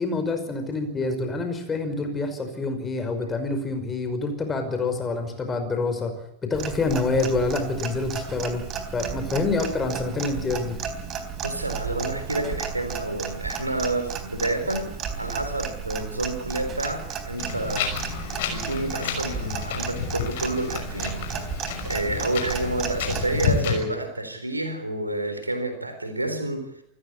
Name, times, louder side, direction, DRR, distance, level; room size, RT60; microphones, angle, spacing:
voice 1, 0.0-6.1 6.4-8.6 8.9-10.8, left 3 dB, 20° left, 7 dB, 5.5 m, -27 dB
Clock, 6.5-23.6, right 7 dB, 30° right, 3.9 m, -34 dB
voice 2, 11.4-17.9 18.5-21.2 21.8-26.8, right 2 dB, 85° right, 8 dB, 4.1 m, -29 dB
Wind, 17.4-23.8, left 7 dB, 55° left, 6.2 m, -30 dB
28.0 x 15.0 x 8.7 m, 0.79 s
figure-of-eight pair, 90°, 0 cm